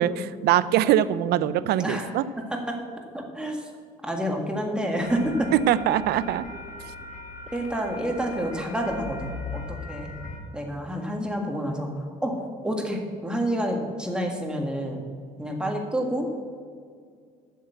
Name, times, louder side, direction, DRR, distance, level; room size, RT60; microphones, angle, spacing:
voice 1, 0.0-2.2 5.7-6.5, right 11 dB, 75° right, 16 dB, 0.5 m, -22 dB
voice 2, 1.8-2.1 2.5-2.8 3.1-3.7 4.0-5.5 7.5-10.1 10.5-11.9 12.2-12.3 12.6-15.0 15.4-16.3, equal, 5° right, 1 dB, 1.7 m, -28 dB
sound 1, 5.0-10.4, left 3 dB, 50° left, 1.5 m, -39 dB
8.1 x 6.6 x 8.0 m, 2.1 s
cardioid pair, 110°, 17 cm